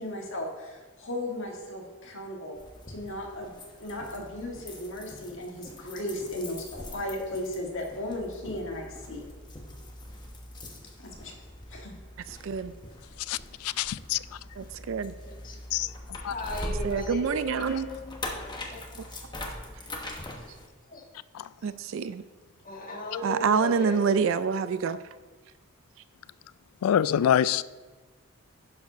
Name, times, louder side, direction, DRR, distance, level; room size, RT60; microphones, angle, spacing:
voice 1, 0.0-2.6 2.9-3.5 3.8-9.2 11.0-11.3 11.7-11.9, left 1 dB, 60° left, 1.8 m, -36 dB
sound 1, 2.6-20.7, left 1 dB, 20° left, 1.0 m, -42 dB
voice 2, 13.3-14.2 15.7-15.9 16.2-16.3 21.3-21.5 26.8-27.6, left 9 dB, 80° left, 0.3 m, -25 dB
voice 3, 14.6-15.1 16.8-17.9 21.6-22.2 23.2-25.0, right 6 dB, 60° right, 0.4 m, -26 dB
voice 4, 15.3-15.9 16.2-18.2 18.7-18.8 19.1-19.4 20.4-20.5 20.9-21.0 22.6-24.2, left 2 dB, 40° left, 1.5 m, -38 dB
11.5 x 4.9 x 5.1 m
head